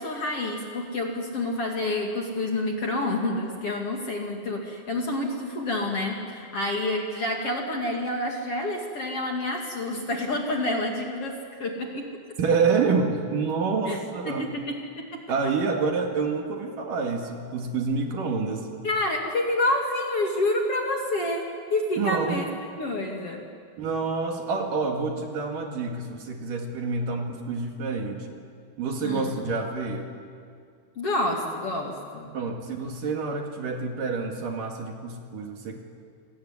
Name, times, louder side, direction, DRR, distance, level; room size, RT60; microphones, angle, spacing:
voice 1, 0.0-12.1 13.9-14.0 14.2-15.2 18.8-21.4 21.7-22.5 22.8-23.4 29.0-29.3 31.0-32.3, left 1 dB, 40° left, 1 dB, 2.8 m, -28 dB
voice 2, 12.4-14.5 15.3-18.7 22.0-22.4 23.8-28.4 28.8-30.1 32.3-35.8, right 4 dB, 60° right, 3 dB, 3.4 m, -28 dB
28.5 x 21.0 x 9.8 m, 2.3 s
omnidirectional pair, 4.8 m